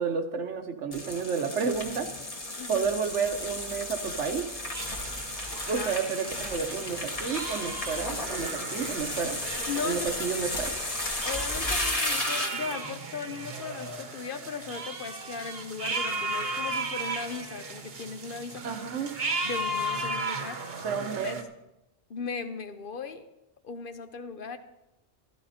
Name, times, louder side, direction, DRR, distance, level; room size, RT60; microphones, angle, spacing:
voice 1, 0.0-2.1 2.7-4.5 5.7-9.4 9.8-10.8 18.6-19.2 20.8-21.4, right 6 dB, 85° right, 6 dB, 1.4 m, -31 dB
sound 1, 0.9-12.8, left 2 dB, 30° left, 1.6 m, -34 dB
voice 2, 2.6-2.9 5.7-6.0 9.7-10.1 10.7-10.8 11.2-18.7 19.4-20.8 21.2-21.4 22.1-23.3 23.6-24.6, left 5 dB, 55° left, 9 dB, 0.8 m, -37 dB
sound 2, 4.7-21.4, right 2 dB, 60° right, 1.2 m, -36 dB
14.0 x 12.0 x 4.3 m, 0.93 s
omnidirectional pair, 1.2 m